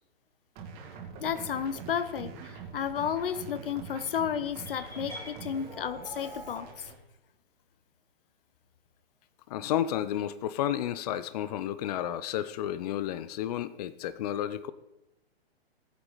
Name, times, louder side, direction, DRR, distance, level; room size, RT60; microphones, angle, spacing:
sound 1, 0.6-7.0, right 5 dB, 30° right, 2.4 m, -44 dB
voice 1, 1.2-6.7, left 8 dB, 60° left, 15 dB, 1.0 m, -32 dB
sound 2, 4.6-6.6, equal, 10° left, 4.3 m, -44 dB
voice 2, 9.5-14.7, left 11 dB, 40° left, 15 dB, 0.7 m, -31 dB
19.0 x 8.3 x 4.0 m, 0.92 s
figure-of-eight pair, 120°, 31 cm